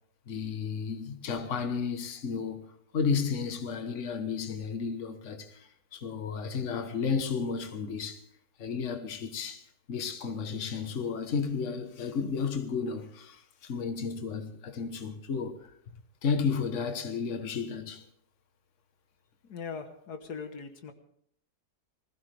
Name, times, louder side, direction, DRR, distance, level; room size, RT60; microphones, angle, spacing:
voice 1, 0.3-2.6 2.9-8.2 8.6-9.6 9.9-15.7 16.2-18.0, left 5 dB, 50° left, 1.6 m, -32 dB
voice 2, 19.4-20.9, left 5 dB, 80° left, 1.9 m, -40 dB
20.5 x 15.5 x 3.4 m
omnidirectional pair, 1.7 m